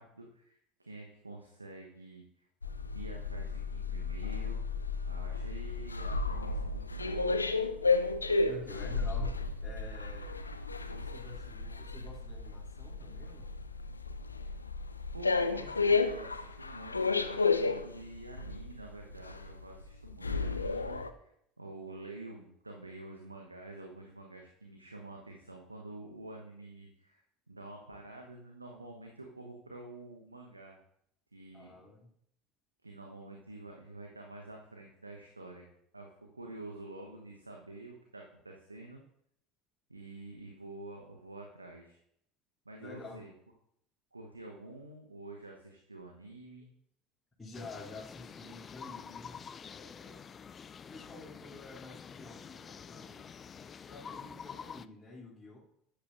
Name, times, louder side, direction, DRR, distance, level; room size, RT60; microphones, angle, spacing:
voice 1, 0.0-2.5 2.9-4.6 5.0-7.4 15.1-21.3 21.6-30.8 31.3-31.7 32.8-35.7 35.9-39.0 39.9-42.0 42.6-43.3 44.1-46.7, right 2 dB, 85° right, 1 dB, 1.1 m, -48 dB
sound 1, 2.6-21.1, left 4 dB, 85° left, 0.5 m, -33 dB
voice 2, 8.5-10.4 10.9-13.5 31.5-32.1 42.8-43.3 47.4-50.3 50.9-53.3 53.6-55.6, left 2 dB, 15° left, -9 dB, 3.0 m, -49 dB
sound 2, 47.5-54.9, left 7 dB, 30° left, 0.4 m, -48 dB
13.0 x 10.5 x 2.6 m, 0.71 s
figure-of-eight pair, 65°, 0 cm